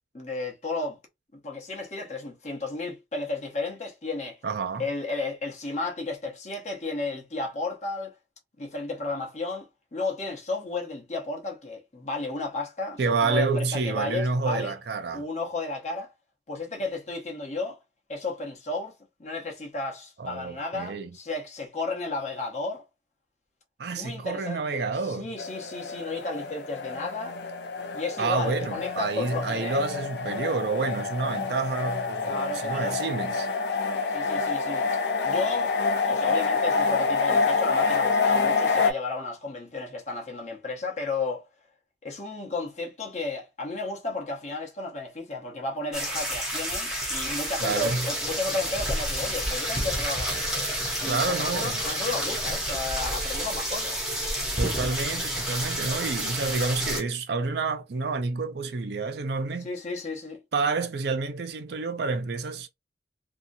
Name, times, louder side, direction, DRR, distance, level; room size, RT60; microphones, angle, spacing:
voice 1, 0.1-1.0 1.3-4.4 4.8-8.1 8.6-14.7 15.1-16.1 16.5-17.8 18.1-18.9 19.2-22.8 23.9-27.4 27.9-29.8 32.3-33.0 34.1-35.7 36.1-41.5 42.0-50.5 51.0-54.0 59.6-60.4, left 3 dB, 40° left, 0.9 m, -33 dB
voice 2, 4.4-4.8 13.0-15.2 20.2-21.1 23.8-25.3 28.2-33.5 47.6-48.1 51.0-51.8 54.6-59.7 60.5-62.7, right 4 dB, 60° right, 0.4 m, -29 dB
sound 1, 25.4-38.9, left 4 dB, 65° left, 0.5 m, -27 dB
sound 2, 45.9-57.0, equal, 5° right, 0.8 m, -29 dB
2.8 x 2.4 x 2.6 m
head